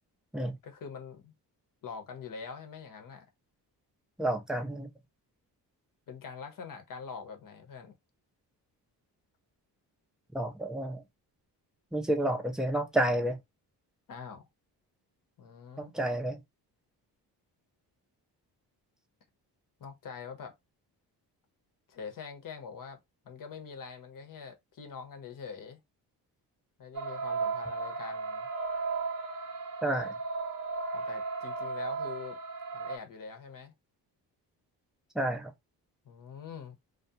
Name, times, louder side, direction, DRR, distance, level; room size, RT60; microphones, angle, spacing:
voice 1, 0.6-1.3 1.8-3.3 6.1-8.0 14.1-14.5 15.4-15.9 19.8-20.6 21.9-25.8 26.8-28.5 30.9-32.4 32.7-33.7 36.0-36.8, left 6 dB, 50° left, 0.8 m, -44 dB
voice 2, 4.2-4.9 10.3-11.0 11.9-13.4 15.8-16.4 29.8-30.1 35.1-35.5, right 1 dB, ahead, 0.5 m, -30 dB
sound 1, 26.9-33.0, right 4 dB, 45° right, 0.7 m, -35 dB
2.4 x 2.2 x 2.7 m
cardioid pair, 80°, 42 cm